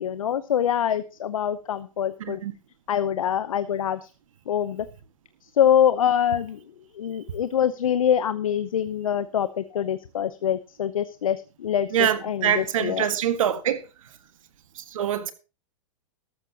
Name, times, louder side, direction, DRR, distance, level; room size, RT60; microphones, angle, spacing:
voice 1, 0.0-2.4 2.9-4.1 4.5-4.9 5.6-6.6 6.9-13.1, left 9 dB, 90° left, 0.8 m, -24 dB
voice 2, 11.9-13.8 14.8-15.3, right 9 dB, 75° right, 1.7 m, -24 dB
13.5 x 13.0 x 2.8 m
hypercardioid pair, 125°, 17 cm